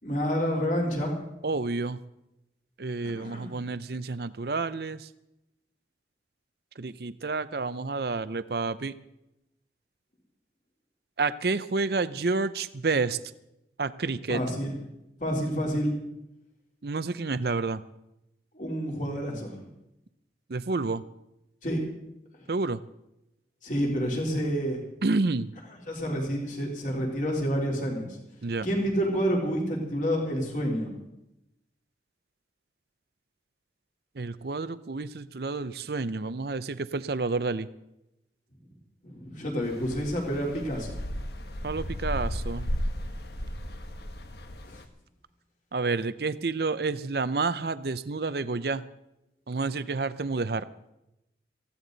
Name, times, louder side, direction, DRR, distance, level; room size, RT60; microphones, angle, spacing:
voice 1, 0.0-1.2 3.2-3.6 14.3-14.7 15.2-15.9 18.5-19.6 21.6-21.8 23.6-24.8 25.9-28.1 28.6-30.9 39.0-41.0, equal, 45° left, -1 dB, 3.7 m, -28 dB
voice 2, 1.4-2.0 2.8-5.1 6.8-8.9 11.2-13.2 13.8-14.4 16.8-17.8 20.5-21.1 22.5-22.8 25.0-25.5 28.4-28.7 34.2-37.7 41.6-42.7 45.7-48.8 49.5-50.7, right 3 dB, 60° right, 14 dB, 0.6 m, -29 dB
sound 1, 39.6-44.8, equal, 65° left, 1.2 m, -34 dB
18.5 x 15.5 x 4.0 m, 0.87 s
head